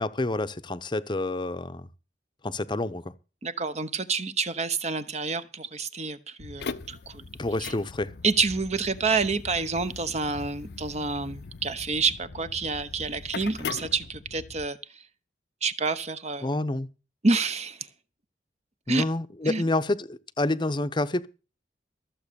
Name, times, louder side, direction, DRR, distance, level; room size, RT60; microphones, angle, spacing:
voice 1, 0.0-1.9 2.4-3.0 7.4-8.1 16.4-16.9 18.9-21.3, left 2 dB, 25° left, 0.8 m, -28 dB
voice 2, 3.4-7.2 7.6-7.7 8.2-15.0 15.6-16.5 17.2-17.9 18.9-19.0 19.4-19.6, right 4 dB, 40° right, 1.0 m, -28 dB
sound 1, 6.4-14.7, left 4 dB, 70° left, 0.7 m, -40 dB
14.5 x 7.4 x 6.9 m
head